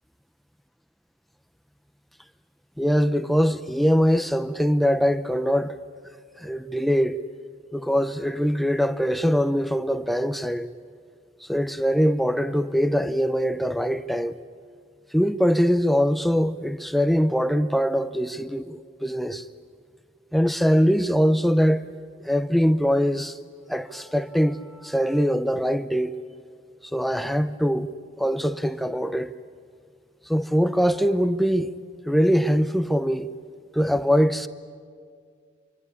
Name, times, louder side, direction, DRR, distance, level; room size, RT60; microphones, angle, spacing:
voice 1, 2.8-5.8 6.4-7.2 7.7-10.7 11.5-14.4 15.1-19.4 20.3-21.9 22.2-23.4 23.7-26.2 26.9-27.9 28.2-29.3 30.3-31.7 32.0-33.3 33.7-34.5, equal, ahead, 0.7 m, -22 dB
26.5 x 24.5 x 8.5 m
head